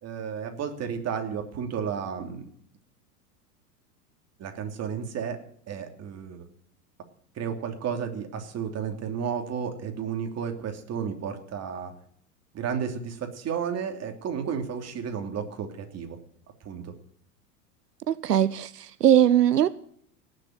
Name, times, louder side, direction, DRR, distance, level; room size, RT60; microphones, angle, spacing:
voice 1, 0.0-2.4 4.4-5.4 5.7-6.5 7.3-11.9 12.5-16.2 16.6-16.9, right 7 dB, 35° right, 3.0 m, -32 dB
voice 2, 18.1-19.7, right 10 dB, 90° right, 0.7 m, -20 dB
18.0 x 7.6 x 8.9 m
hypercardioid pair, 90°, 47 cm